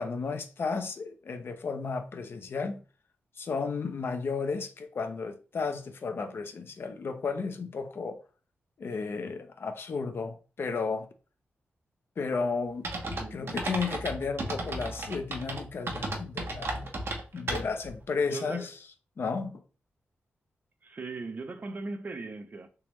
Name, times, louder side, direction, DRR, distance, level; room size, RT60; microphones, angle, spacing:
voice 1, 0.0-2.8 3.4-8.2 8.8-11.1 12.2-16.9 17.3-18.7 19.2-19.6, left 4 dB, 60° left, 0.6 m, -33 dB
sound 1, 12.8-17.9, right 2 dB, 60° right, 0.9 m, -34 dB
voice 2, 18.3-18.7 20.8-22.7, right 3 dB, 45° right, 0.5 m, -39 dB
3.5 x 3.0 x 3.0 m
cardioid pair, 80°, 4 cm